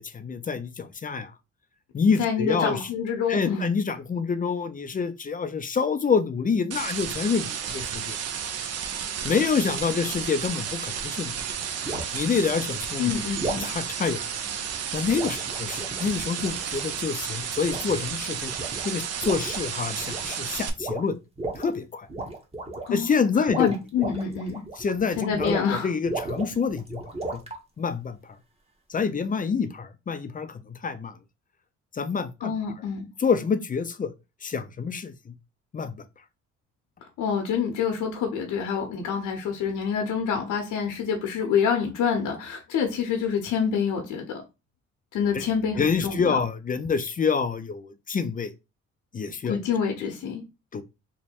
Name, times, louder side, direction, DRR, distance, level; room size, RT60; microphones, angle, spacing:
voice 1, 0.1-1.3 1.9-2.8 3.3-8.2 9.2-11.3 12.1-13.1 13.6-14.2 14.9-18.5 18.8-21.2 21.6-22.1 22.9-23.7 24.8-27.0 27.3-27.4 27.8-28.2 28.9-31.1 32.0-32.5 33.2-34.1 34.4-35.1 35.7-35.9 45.3-45.4 45.8-48.5 49.1-49.6 50.7-50.8, left 5 dB, 30° left, 0.5 m, -27 dB
voice 2, 2.2-3.7 13.0-13.7 22.9-23.3 23.6-24.6 25.2-25.9 32.4-33.1 37.2-44.4 45.1-46.4 49.4-50.4, left 7 dB, 85° left, 0.8 m, -27 dB
sound 1, 6.7-20.7, right 7 dB, 55° right, 0.7 m, -32 dB
sound 2, 10.6-10.9 11.8-12.2 13.4-13.7 15.1-17.0 17.7-18.2 18.5-18.9 19.2-19.7 20.0-20.4 20.8-21.7 22.1-23.0 23.3-25.7 26.1-27.6, right 2 dB, 20° right, 1.0 m, -35 dB
3.2 x 2.2 x 4.2 m
cardioid pair, 90°, 30 cm